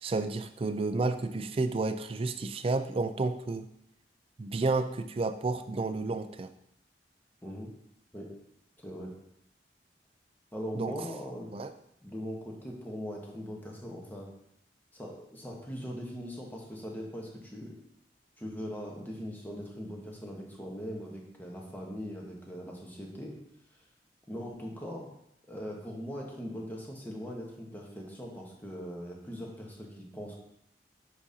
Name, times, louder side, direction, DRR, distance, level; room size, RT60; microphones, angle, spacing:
voice 1, 0.0-3.7 4.4-6.5 10.7-11.0 11.5-11.7, right 3 dB, 30° right, 9 dB, 0.3 m, -31 dB
voice 2, 8.8-9.1 10.5-11.6 12.0-14.3 14.9-17.7 18.4-23.3 24.3-25.1 25.5-30.4, equal, 10° left, -1 dB, 1.0 m, -40 dB
7.2 x 5.1 x 2.7 m, 0.77 s
head